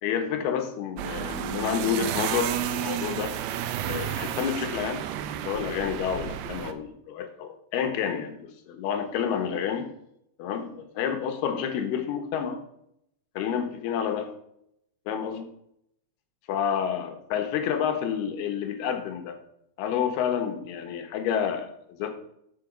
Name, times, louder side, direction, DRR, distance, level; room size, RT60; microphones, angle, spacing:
voice 1, 0.0-3.4 3.8-5.0 5.5-9.9 10.4-12.6 13.4-14.3 15.1-15.4 16.5-19.4 19.8-22.2, left 8 dB, 85° left, 7 dB, 3.2 m, -29 dB
sound 1, 1.0-6.7, right 11 dB, 85° right, 2.7 m, -31 dB
12.0 x 7.0 x 5.0 m, 0.75 s
omnidirectional pair, 4.5 m